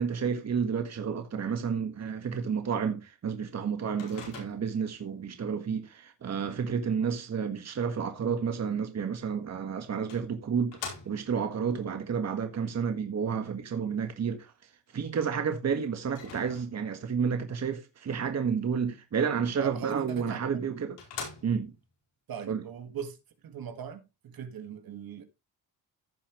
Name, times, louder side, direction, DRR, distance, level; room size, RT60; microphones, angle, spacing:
voice 1, 0.0-14.5 14.9-21.0 21.4-21.7 22.5-22.6, right 6 dB, 40° right, 1.6 m, -31 dB
Microwave oven, 4.0-4.9 9.2-9.3 10.1-11.5 16.1-17.0 20.1-20.2 20.6-20.7 21.0-21.8, left 6 dB, 85° left, 4.5 m, -43 dB
voice 2, 19.6-20.4 22.3-23.2 23.4-25.2, right 7 dB, 55° right, 1.8 m, -39 dB
15.5 x 5.7 x 3.1 m
cardioid pair, 110°, 41 cm